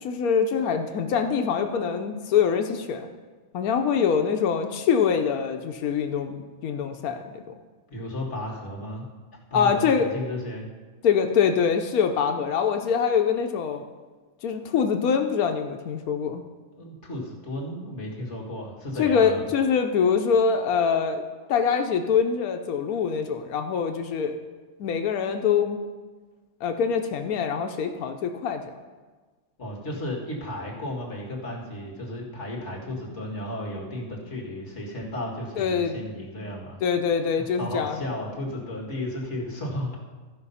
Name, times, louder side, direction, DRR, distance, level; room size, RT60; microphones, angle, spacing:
voice 1, 0.0-3.1 3.5-7.4 9.5-10.1 11.0-13.8 14.4-16.4 19.0-21.2 21.5-24.4 24.8-25.8 26.6-28.7 35.6-36.0 36.8-38.0, left 6 dB, 85° left, 6 dB, 1.2 m, -24 dB
voice 2, 7.9-9.0 9.5-10.7 16.8-19.4 29.6-36.8 37.4-40.0, left 1 dB, 55° left, -2 dB, 2.2 m, -34 dB
14.0 x 5.3 x 5.6 m, 1.4 s
omnidirectional pair, 1.5 m